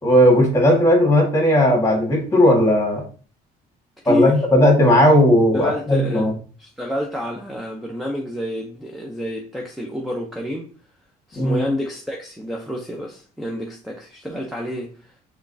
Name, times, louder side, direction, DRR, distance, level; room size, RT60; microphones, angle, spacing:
voice 1, 0.0-3.0 4.0-6.3 11.4-11.7, left 1 dB, 20° left, 1.7 m, -16 dB
voice 2, 4.1-4.5 5.5-6.3 6.6-10.7 11.3-15.1, left 1 dB, ahead, 0.7 m, -28 dB
4.8 x 3.2 x 2.6 m
cardioid pair, 110°, 17 cm